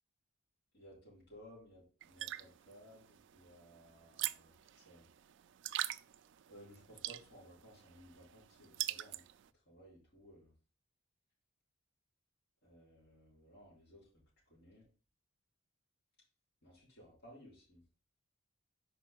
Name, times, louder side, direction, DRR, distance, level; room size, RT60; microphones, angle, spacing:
voice 1, 0.7-5.1 6.5-9.2 9.7-10.5 12.6-14.1 14.5-14.9 16.6-17.8, equal, 55° left, -7 dB, 3.6 m, -59 dB
sound 1, 2.0-9.5, right 14 dB, 60° right, 0.3 m, -44 dB
5.1 x 4.5 x 5.5 m, 0.38 s
head